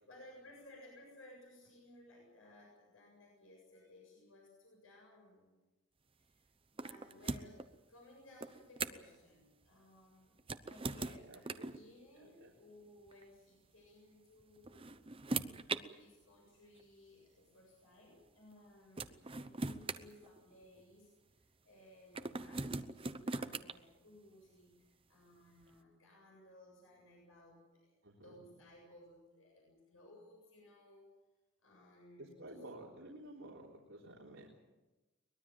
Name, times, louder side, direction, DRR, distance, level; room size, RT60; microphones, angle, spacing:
voice 1, 0.0-5.6 6.1-15.0 15.7-27.9 28.2-31.1 31.6-32.7, left 1 dB, 80° left, -1 dB, 7.5 m, -60 dB
sound 1, 6.8-7.7 8.4-9.2 10.4-11.8 13.1-13.2 14.4-15.8 16.8-16.9 18.5-18.6 19.0-20.8 22.1-23.7, right 3 dB, 25° right, 0.8 m, -41 dB
voice 2, 11.2-11.7 12.2-12.5 28.0-28.4 32.2-34.5, right 1 dB, 70° right, -3 dB, 3.6 m, -52 dB
23.0 x 21.0 x 7.6 m, 1.1 s
head